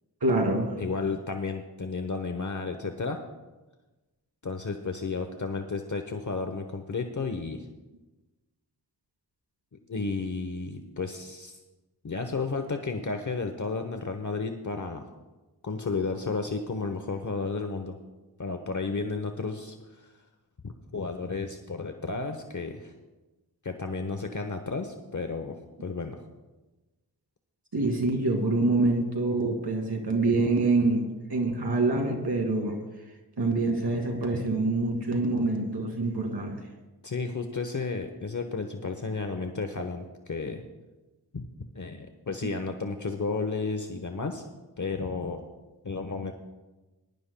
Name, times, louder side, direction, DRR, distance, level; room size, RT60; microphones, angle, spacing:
voice 1, 0.2-0.8 27.7-32.8 33.4-36.6, right 2 dB, 80° right, 2 dB, 2.1 m, -26 dB
voice 2, 0.8-3.2 4.4-7.6 9.9-11.6 12.0-15.1 15.6-18.0 18.4-20.1 20.6-22.9 23.6-26.2 37.0-40.6 41.3-41.5 41.7-44.5 44.8-45.4 45.8-46.3, left 4 dB, 50° left, 6 dB, 0.9 m, -32 dB
21.0 x 11.5 x 2.2 m, 1.1 s
wide cardioid pair, 45°, 39 cm